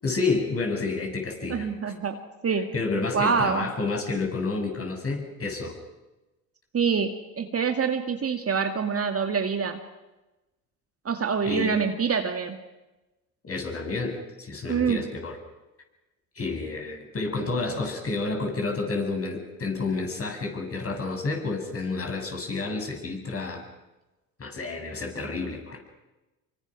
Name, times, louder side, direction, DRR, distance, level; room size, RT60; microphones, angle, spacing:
voice 1, 0.0-1.7 2.7-5.8 11.4-11.7 13.4-15.4 16.4-23.6 24.4-25.8, left 3 dB, 30° left, 2 dB, 7.2 m, -30 dB
voice 2, 1.5-2.7 3.1-3.7 6.7-9.8 11.1-12.6 14.7-15.1, right 6 dB, 30° right, 5 dB, 2.2 m, -26 dB
26.5 x 24.0 x 6.1 m, 1.1 s
hypercardioid pair, 75°, 46 cm